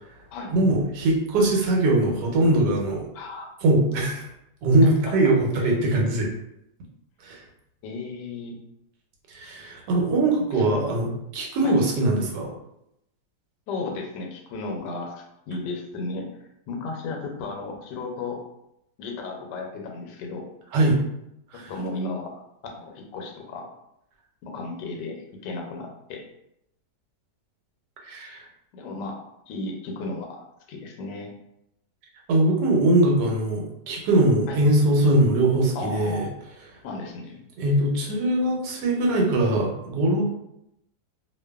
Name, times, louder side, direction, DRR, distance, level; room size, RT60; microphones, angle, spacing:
voice 1, 0.5-3.0 3.6-4.2 4.6-6.3 7.2-7.4 9.3-12.5 20.7-21.0 21.5-21.7 28.0-28.4 32.3-36.2 37.6-40.2, right 1 dB, 85° right, -1 dB, 1.2 m, -21 dB
voice 2, 3.1-3.5 5.1-5.2 5.6-5.7 7.8-8.6 10.5-10.9 11.6-11.7 13.7-16.4 16.7-18.4 19.0-20.5 21.5-22.3 22.6-23.7 24.4-26.3 28.7-31.3 34.5-34.6 35.7-36.3 36.8-37.4, left 3 dB, 85° left, 1 dB, 1.2 m, -34 dB
2.5 x 2.5 x 2.2 m, 0.81 s
omnidirectional pair, 1.8 m